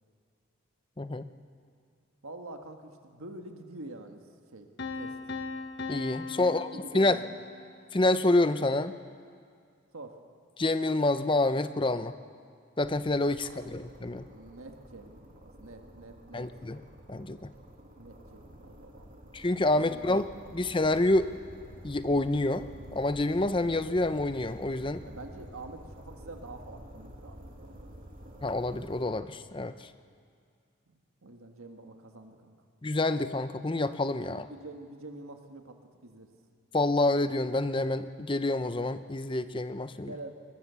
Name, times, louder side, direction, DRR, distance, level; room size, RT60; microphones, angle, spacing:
voice 1, 1.0-1.3 5.9-6.7 6.9-7.2 7.9-8.9 10.6-12.1 12.8-14.3 16.3-16.8 17.1-17.5 19.3-20.3 20.5-21.3 21.8-25.0 28.4-29.9 32.8-34.5 36.7-40.1, left 2 dB, 25° left, 11 dB, 0.6 m, -27 dB
voice 2, 2.2-4.7 4.9-5.2 6.4-7.4 9.9-10.2 13.4-13.7 14.0-16.5 18.0-19.3 19.7-20.1 25.1-28.1 30.9-32.6 34.3-36.3 40.0-40.3, right 2 dB, 85° right, 5 dB, 1.7 m, -47 dB
Piano, 4.8-7.7, left 4 dB, 55° left, 1.1 m, -39 dB
sound 1, 12.8-29.1, equal, 40° right, 2.4 m, -49 dB
21.5 x 21.5 x 7.0 m, 2.2 s
head